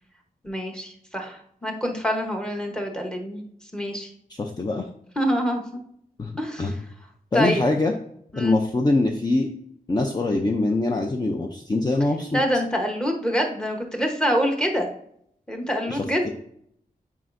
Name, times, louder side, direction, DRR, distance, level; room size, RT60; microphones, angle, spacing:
voice 1, 0.4-3.4 3.7-4.1 5.2-5.8 6.4-6.7 7.3-7.6 8.3-8.6 12.3-14.9 15.5-16.3, equal, 5° left, 3 dB, 1.0 m, -26 dB
voice 2, 4.3-4.9 6.2-6.3 6.6-6.7 7.3-7.9 8.4-9.5 9.9-12.4 15.9-16.3, left 2 dB, 25° left, 3 dB, 0.5 m, -23 dB
7.6 x 4.8 x 2.6 m, 0.69 s
wide cardioid pair, 135°, 15 cm